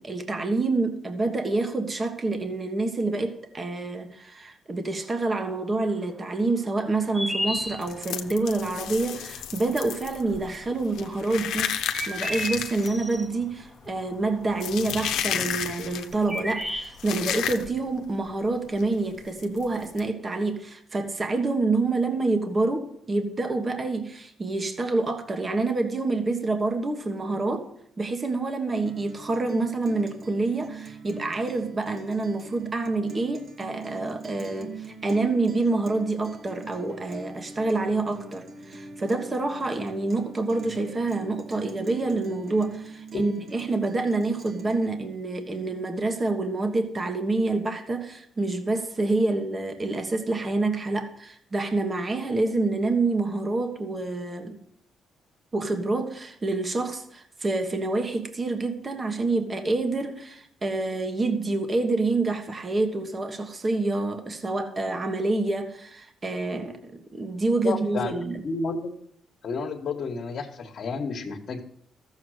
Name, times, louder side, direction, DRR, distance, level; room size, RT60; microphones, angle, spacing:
voice 1, 0.0-11.8 12.1-27.7 28.0-54.6 55.5-68.4, right 3 dB, 30° right, 1.5 m, -27 dB
sound 1, 6.9-8.2 10.2-10.3 11.5-13.3 15.7-15.8 16.0-17.3, equal, 5° right, 1.3 m, -32 dB
sound 2, 7.5-18.0 18.3-18.5 18.8-18.9 19.4-20.0, left 9 dB, 80° left, 0.9 m, -32 dB
Guitar, 28.9-44.9, right 4 dB, 50° right, 1.5 m, -43 dB
voice 2, 67.6-68.1 68.4-68.9 69.4-71.6, left 4 dB, 55° left, 1.5 m, -31 dB
14.0 x 7.3 x 6.5 m
cardioid pair, 90°, 0 cm